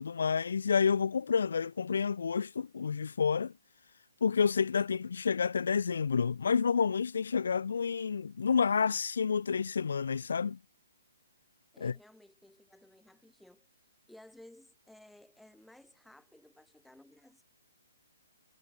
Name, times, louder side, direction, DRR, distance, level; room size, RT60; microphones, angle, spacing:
voice 1, 0.0-3.5 4.2-10.6 11.8-11.9, left 6 dB, 75° left, 0.5 m, -29 dB
voice 2, 11.7-13.7 14.1-17.4, left 1 dB, ahead, 4.7 m, -57 dB
hypercardioid pair, 160°, 0 cm